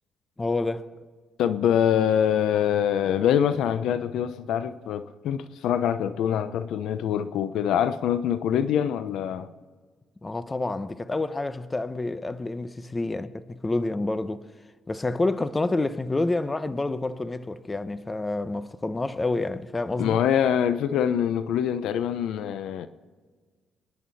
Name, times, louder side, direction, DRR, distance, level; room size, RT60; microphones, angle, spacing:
voice 1, 0.4-0.9 10.2-14.4 14.9-20.2, left 2 dB, 20° left, 0.9 m, -28 dB
voice 2, 1.4-9.5 20.0-22.9, left 9 dB, 80° left, 0.8 m, -24 dB
26.5 x 11.0 x 4.2 m
cardioid pair, 90°, 0 cm